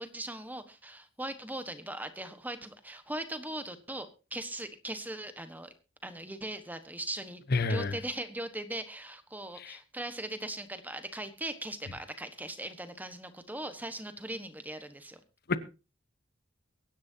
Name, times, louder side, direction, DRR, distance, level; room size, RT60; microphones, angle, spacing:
voice 1, 0.0-5.7 6.0-7.4 7.7-15.2, right 1 dB, 10° right, 1.3 m, -39 dB
voice 2, 7.5-8.0 9.6-9.8 15.5-15.6, left 3 dB, 50° left, 1.0 m, -28 dB
23.0 x 10.5 x 2.8 m
head